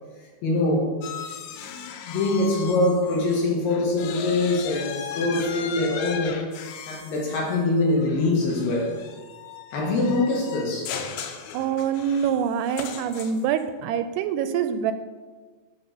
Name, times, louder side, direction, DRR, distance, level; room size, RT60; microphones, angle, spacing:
voice 1, 0.4-1.0 1.5-6.4 6.8-8.9 9.7-10.9, left 2 dB, 65° left, -2 dB, 2.7 m, -24 dB
sound 1, 1.0-3.4 3.7-13.6, left 7 dB, 85° left, 3.0 m, -37 dB
voice 2, 11.5-14.9, right 8 dB, 85° right, 9 dB, 2.5 m, -25 dB
10.5 x 3.9 x 6.6 m, 1.4 s
omnidirectional pair, 4.9 m